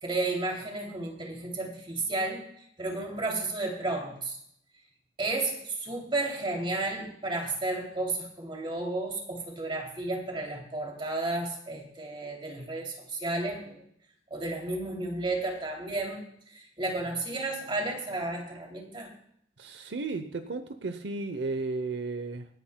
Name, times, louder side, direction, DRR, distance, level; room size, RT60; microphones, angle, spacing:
voice 1, 0.0-4.4 5.2-13.8 14.3-16.2 16.5-19.1, right 2 dB, 30° right, 0 dB, 2.8 m, -32 dB
voice 2, 19.6-22.5, right 3 dB, 80° right, 9 dB, 0.8 m, -34 dB
26.0 x 10.0 x 2.2 m, 0.69 s
head